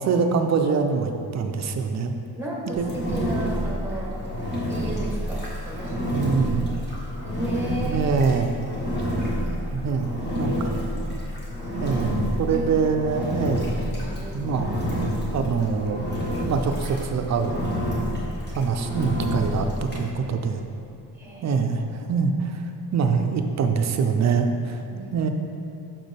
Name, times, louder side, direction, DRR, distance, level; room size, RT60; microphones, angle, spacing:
voice 1, 0.0-2.1 2.8-3.0 6.1-6.7 7.8-8.5 9.7-10.7 11.8-13.7 14.3-14.8 15.3-16.0 16.5-17.7 18.5-20.6 21.4-22.6 22.9-24.8 25.1-25.3, right 5 dB, 45° right, 6 dB, 0.4 m, -24 dB
voice 2, 2.3-4.2 4.6-6.0 7.2-8.1 8.8-9.4 12.5-12.7 13.2-13.5 13.9-14.6 21.1-21.6 24.9-25.3, right 1 dB, 5° right, -4 dB, 1.0 m, -34 dB
Engine, 2.7-20.0, equal, 25° left, 1.2 m, -28 dB
6.5 x 6.0 x 3.3 m, 2.8 s
wide cardioid pair, 175°, 40 cm